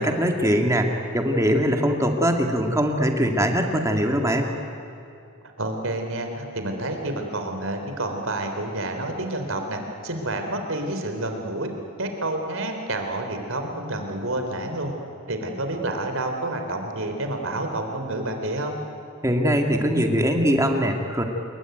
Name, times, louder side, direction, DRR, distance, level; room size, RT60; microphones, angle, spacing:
voice 1, 0.0-4.5 19.2-21.2, equal, 15° right, 3 dB, 2.4 m, -22 dB
voice 2, 5.6-11.7 12.0-14.9 15.3-18.8, right 1 dB, 70° right, 5 dB, 3.9 m, -29 dB
28.0 x 22.5 x 9.5 m, 2.7 s
head